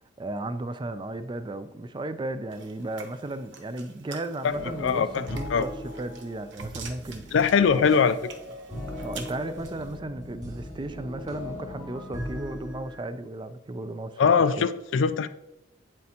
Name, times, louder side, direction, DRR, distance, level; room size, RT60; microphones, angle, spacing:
voice 1, 0.2-5.7 6.0-7.2 7.7-8.0 9.0-14.7, right 2 dB, 25° right, 11 dB, 0.4 m, -35 dB
sound 1, 2.5-10.0, right 4 dB, 70° right, 0.9 m, -45 dB
sound 2, 4.5-13.0, left 1 dB, 40° right, 2.2 m, -39 dB
voice 2, 4.8-5.7 7.3-8.2 14.2-15.3, left 6 dB, 80° left, 12 dB, 0.4 m, -22 dB
8.5 x 7.6 x 2.8 m, 0.92 s
head